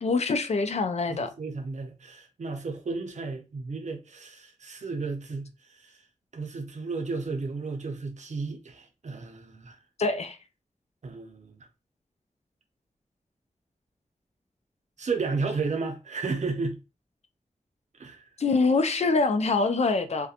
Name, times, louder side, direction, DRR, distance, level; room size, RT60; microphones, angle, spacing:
voice 1, 0.0-1.3 10.0-10.4 18.4-20.3, left 3 dB, 55° left, 0.4 m, -24 dB
voice 2, 1.1-5.5 5.8-5.9 6.3-9.8 11.0-11.6 15.0-16.8 18.0-18.2, right 4 dB, 65° right, 0.6 m, -33 dB
2.4 x 2.1 x 2.8 m
wide cardioid pair, 65°, 13 cm